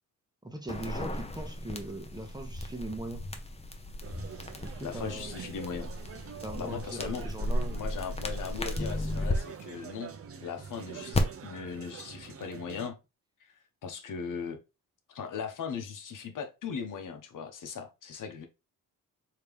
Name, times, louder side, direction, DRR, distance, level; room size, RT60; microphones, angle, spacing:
voice 1, 0.4-3.2 4.6-5.3 6.4-7.9, right 1 dB, 10° right, 0.9 m, -40 dB
sound 1, 0.7-9.4 11.1-11.2, left 1 dB, 20° left, 0.7 m, -35 dB
sound 2, 4.0-12.9, right 7 dB, 45° right, 0.6 m, -45 dB
voice 2, 4.8-5.9 6.6-7.3 7.7-10.1 10.4-13.0 13.4-14.6 15.1-18.5, left 6 dB, 65° left, 0.9 m, -38 dB
3.2 x 2.8 x 3.5 m
cardioid pair, 75°, 33 cm